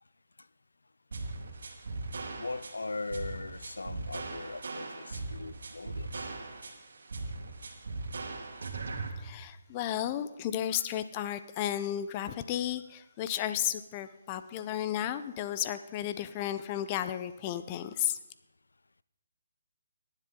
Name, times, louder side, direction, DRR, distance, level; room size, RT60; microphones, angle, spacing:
sound 1, 1.1-9.1, right 3 dB, 70° right, 2.0 m, -39 dB
voice 1, 2.4-6.3, left 3 dB, 90° left, 0.4 m, -39 dB
voice 2, 9.2-18.2, left 11 dB, 25° left, 0.6 m, -33 dB
18.5 x 10.5 x 3.8 m
hypercardioid pair, 155°, 0 cm